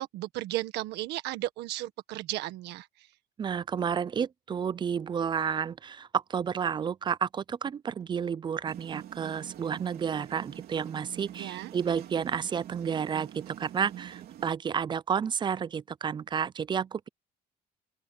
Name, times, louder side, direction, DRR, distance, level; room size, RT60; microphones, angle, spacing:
voice 1, 0.0-3.1 11.4-11.7, right 16 dB, 85° right, 1.6 m, -35 dB
voice 2, 3.4-17.1, right 7 dB, 25° right, 0.4 m, -31 dB
sound 1, 8.7-14.5, right 11 dB, 65° right, 3.5 m, -45 dB
open air
cardioid pair, 110°, 17 cm